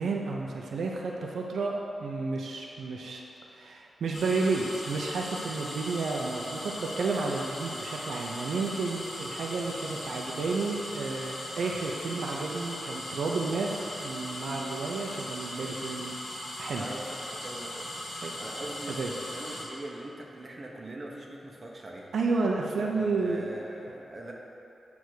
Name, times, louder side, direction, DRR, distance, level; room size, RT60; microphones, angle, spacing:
voice 1, 0.0-3.2 3.5-13.7 14.0-16.1 16.6-16.8 18.2-18.3 19.0-19.1 22.1-23.5, right 3 dB, 80° right, -1 dB, 0.7 m, -31 dB
sound 1, 4.1-19.6, left 1 dB, 55° left, 1.6 m, -39 dB
voice 2, 16.8-22.1 22.5-24.3, right 1 dB, 30° right, -2 dB, 0.9 m, -42 dB
8.3 x 3.6 x 6.3 m, 2.9 s
wide cardioid pair, 135°, 0 cm